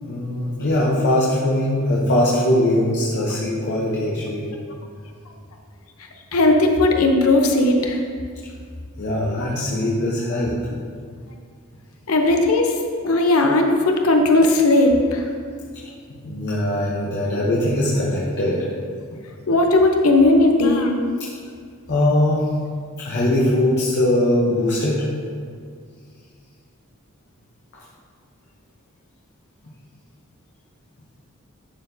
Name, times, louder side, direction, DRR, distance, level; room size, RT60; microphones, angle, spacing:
voice 1, 0.0-4.6 9.0-10.8 16.1-18.7 21.9-22.5 23.0-25.1 27.7-27.8, left 1 dB, 55° left, -5 dB, 0.9 m, -21 dB
voice 2, 6.3-8.0 12.1-15.2 19.5-20.9, left 2 dB, 85° left, 3 dB, 0.8 m, -17 dB
11.5 x 4.3 x 2.7 m, 2.1 s
head